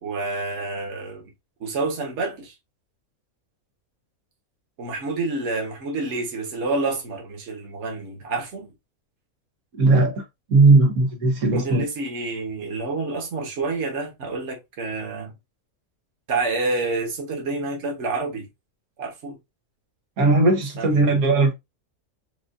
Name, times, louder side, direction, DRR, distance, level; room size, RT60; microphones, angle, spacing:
voice 1, 0.0-1.2 1.6-2.5 4.8-8.7 11.5-15.3 16.3-18.5 19.0-19.4 20.8-21.1, right 3 dB, 55° right, 1.4 m, -28 dB
voice 2, 9.8-10.2 10.5-11.8 20.2-21.5, right 3 dB, 80° right, 1.5 m, -17 dB
5.4 x 2.5 x 2.4 m
omnidirectional pair, 1.5 m